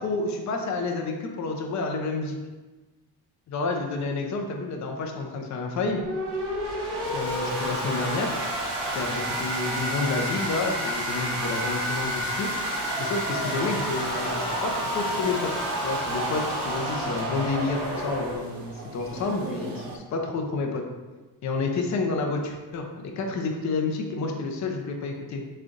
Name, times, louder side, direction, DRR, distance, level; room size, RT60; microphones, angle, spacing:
voice 1, 0.0-2.4 3.5-6.0 7.1-8.4 8.9-12.5 13.0-15.5 15.8-20.8 21.4-25.4, left 3 dB, 45° left, 2 dB, 0.6 m, -29 dB
sound 1, 5.7-18.4, equal, 85° right, 1.5 m, -30 dB
sound 2, 12.6-20.0, right 2 dB, 55° right, 0.8 m, -38 dB
3.7 x 3.2 x 3.8 m, 1.2 s
cardioid pair, 135°, 41 cm